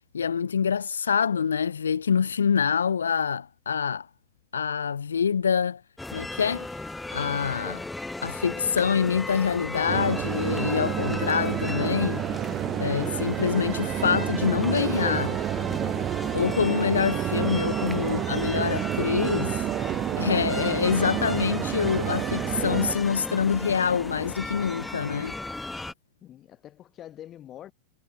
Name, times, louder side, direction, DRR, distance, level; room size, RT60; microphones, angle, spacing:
voice 1, 0.1-4.1 4.5-5.8 6.1-6.7 7.1-7.9 8.2-12.2 12.8-15.4 16.3-19.7 20.2-25.3, left 7 dB, 70° left, 0.6 m, -26 dB
sound 1, 6.0-25.9, left 2 dB, 5° left, 1.2 m, -36 dB
sound 2, 9.9-23.0, right 13 dB, 30° right, 0.4 m, -29 dB
voice 2, 12.2-12.9 26.2-27.7, left 11 dB, 30° left, 1.3 m, -45 dB
figure-of-eight pair, 90°, 0 cm